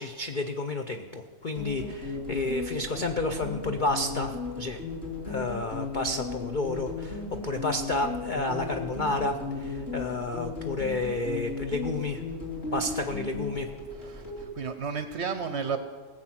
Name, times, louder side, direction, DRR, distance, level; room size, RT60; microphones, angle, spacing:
voice 1, 0.0-4.8 5.2-12.2 12.7-13.7, left 2 dB, 60° left, 5 dB, 0.5 m, -31 dB
sound 1, 1.6-14.5, left 3 dB, 35° left, 2.9 m, -36 dB
Bass guitar, 8.3-12.4, right 3 dB, 15° left, 0.8 m, -46 dB
voice 2, 12.8-13.2 13.9-15.8, right 6 dB, 55° right, 9 dB, 0.8 m, -33 dB
18.0 x 7.7 x 5.9 m, 1.5 s
omnidirectional pair, 1.7 m